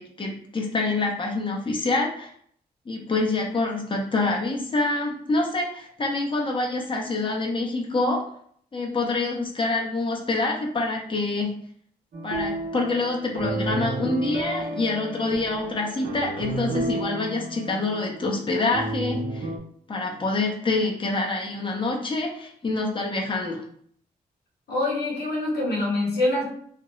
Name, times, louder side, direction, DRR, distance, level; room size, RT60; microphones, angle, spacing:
voice 1, 0.0-2.3 2.9-8.2 8.7-11.5 12.2-19.5 19.9-23.6, left 2 dB, 30° left, 0 dB, 0.8 m, -26 dB
sound 1, 12.1-19.6, right 2 dB, 65° right, 0.8 m, -32 dB
voice 2, 24.7-26.5, left 2 dB, 80° left, -2 dB, 0.8 m, -25 dB
2.8 x 2.5 x 3.0 m, 0.62 s
cardioid pair, 55°, 16 cm